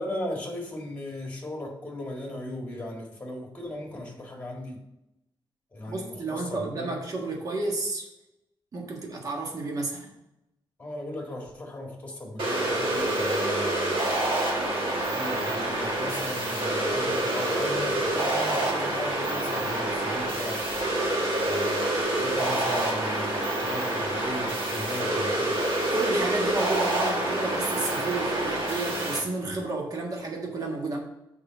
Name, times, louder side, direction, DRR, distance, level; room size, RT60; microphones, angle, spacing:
voice 1, 0.0-4.8 5.7-7.0 10.8-14.3 15.0-20.7 21.4-25.6, left 1 dB, 15° left, 1 dB, 1.9 m, -37 dB
voice 2, 5.9-8.0 8.7-10.1 25.9-31.0, right 2 dB, 45° right, 0 dB, 1.6 m, -31 dB
sound 1, 12.4-29.2, right 1 dB, 85° right, 2.0 m, -27 dB
6.7 x 5.0 x 6.0 m, 0.88 s
wide cardioid pair, 145°, 9 cm